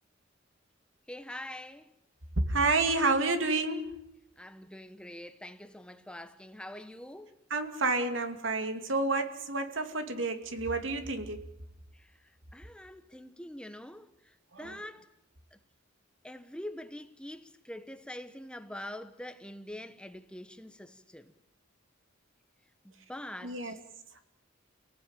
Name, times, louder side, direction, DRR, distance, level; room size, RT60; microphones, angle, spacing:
voice 1, 1.1-1.9 4.4-7.4 11.9-15.1 15.5-15.6 16.2-21.3 22.8-23.8, left 1 dB, 5° left, 1.0 m, -45 dB
voice 2, 2.5-3.9 7.5-11.4 14.5-14.7 23.4-23.7, right 3 dB, 70° right, 2.6 m, -29 dB
29.0 x 18.0 x 9.0 m
head